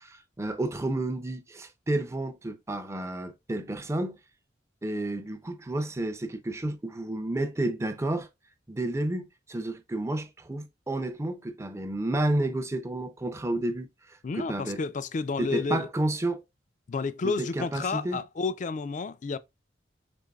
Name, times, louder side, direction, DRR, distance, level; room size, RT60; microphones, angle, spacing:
voice 1, 0.0-4.2 4.8-8.3 8.7-14.8 15.4-16.4 17.2-18.2, right 1 dB, 15° right, 0.5 m, -31 dB
voice 2, 14.2-15.9 16.9-19.4, left 4 dB, 45° left, 0.4 m, -31 dB
5.2 x 3.7 x 2.3 m
head